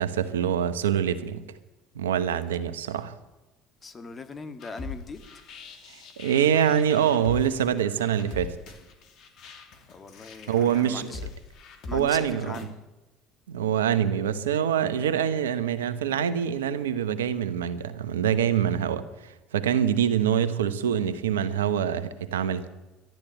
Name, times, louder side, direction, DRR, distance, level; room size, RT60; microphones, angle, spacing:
voice 1, 0.0-1.4 1.9-3.2 5.9-8.6 10.5-11.1 11.9-12.6 13.5-22.7, right 9 dB, 90° right, 1.0 m, -25 dB
voice 2, 3.8-5.2 9.9-11.3 11.9-12.7, left 4 dB, 35° left, 1.9 m, -40 dB
sound 1, 4.6-12.6, left 4 dB, 60° left, 2.6 m, -42 dB
12.0 x 12.0 x 9.0 m
hypercardioid pair, 70°, 0 cm